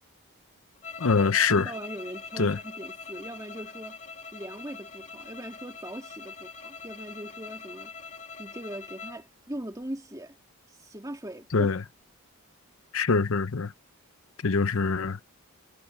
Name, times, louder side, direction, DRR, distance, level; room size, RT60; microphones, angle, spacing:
sound 1, 0.8-9.2, left 4 dB, 30° left, 2.9 m, -43 dB
voice 1, 1.0-1.7 2.4-2.6 11.5-11.8 12.9-13.7 14.4-15.2, left 4 dB, 65° left, 0.7 m, -24 dB
voice 2, 1.5-4.0 4.3-7.9 8.4-10.4 10.8-11.7, right 1 dB, 15° right, 2.2 m, -40 dB
head